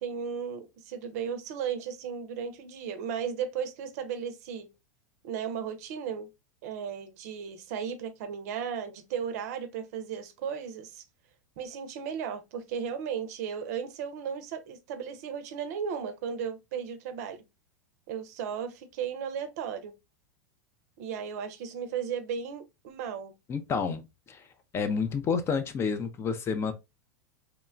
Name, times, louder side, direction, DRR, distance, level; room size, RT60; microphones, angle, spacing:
voice 1, 0.0-4.7 5.2-6.3 6.6-11.0 11.6-17.4 18.1-19.9 21.0-23.3, right 7 dB, 65° right, 0.5 m, -35 dB
voice 2, 23.5-24.4 24.7-26.7, left 5 dB, 25° left, 0.4 m, -29 dB
3.0 x 2.1 x 2.3 m
hypercardioid pair, 105°, 9 cm